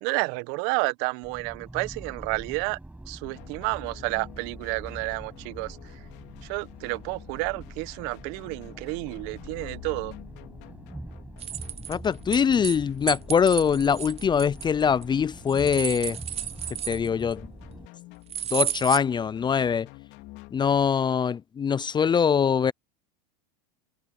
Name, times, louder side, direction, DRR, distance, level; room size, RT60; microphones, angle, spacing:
voice 1, 0.0-2.8 3.1-5.8 6.4-10.1, right 27 dB, 60° right, 1.1 m, -30 dB
sound 1, 1.2-17.9, right 1 dB, 5° right, 6.7 m, -44 dB
sound 2, 3.2-20.9, left 21 dB, 55° left, 2.8 m, -49 dB
sound 3, 11.4-12.8 13.1-15.0 15.5-17.3 18.3-19.0, right 10 dB, 30° right, 0.6 m, -32 dB
voice 2, 11.9-16.2 16.9-17.5 18.5-19.9 20.5-22.7, left 7 dB, 20° left, 0.5 m, -23 dB
hypercardioid pair, 95°, 21 cm